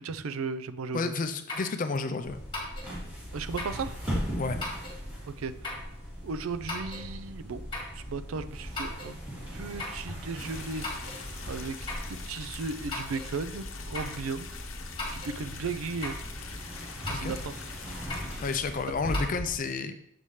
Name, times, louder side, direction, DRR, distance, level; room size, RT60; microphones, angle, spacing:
voice 1, 0.0-1.1 3.3-4.0 5.3-5.5 6.2-7.6 7.9-9.2 9.5-10.9 11.5-11.8 12.1-14.5 15.1-16.2 17.1-17.5, right 4 dB, 80° right, 12 dB, 0.4 m, -35 dB
voice 2, 0.9-2.4 4.4-4.6 17.1-17.3 18.4-19.9, left 4 dB, 40° left, 8 dB, 0.4 m, -31 dB
sound 1, 1.5-1.8 2.5-2.9 3.6-3.8 4.6-5.0 5.6-5.9 6.7-7.1 7.7-8.0 8.8-9.1 9.8-10.0 10.8-11.2 11.9-12.1 12.9-13.3 13.9-14.2 15.0-15.4 16.0-16.3 17.1-17.4 18.1-18.4 19.1-19.3, left 2 dB, 25° left, 1.7 m, -37 dB
sound 2, 2.2-19.6, equal, 10° right, 2.3 m, -39 dB
sound 3, 10.4-18.6, left 6 dB, 65° left, 0.8 m, -45 dB
6.8 x 5.6 x 3.2 m, 0.74 s
head